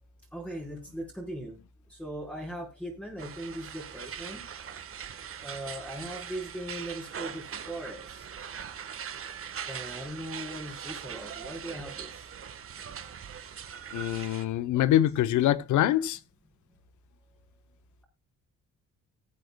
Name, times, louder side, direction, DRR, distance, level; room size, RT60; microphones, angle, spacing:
voice 1, 0.3-1.6 1.9-4.4 5.4-8.2 9.7-12.1 14.7-14.9, right 1 dB, 5° left, 4.5 m, -39 dB
sound 1, 3.2-14.5, right 8 dB, 45° right, 1.3 m, -41 dB
voice 2, 13.9-16.2, left 12 dB, 75° left, 0.8 m, -24 dB
19.5 x 7.9 x 2.2 m
cardioid pair, 90°, 30 cm